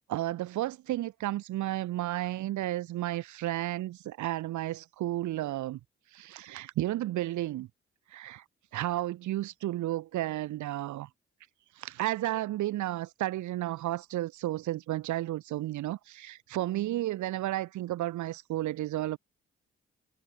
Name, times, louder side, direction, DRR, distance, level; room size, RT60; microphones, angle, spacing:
voice 1, 0.1-5.8 6.1-7.7 8.1-8.4 8.7-11.1 11.8-19.2, right 15 dB, 80° right, 3.5 m, -32 dB
hypercardioid pair, 40°, 29 cm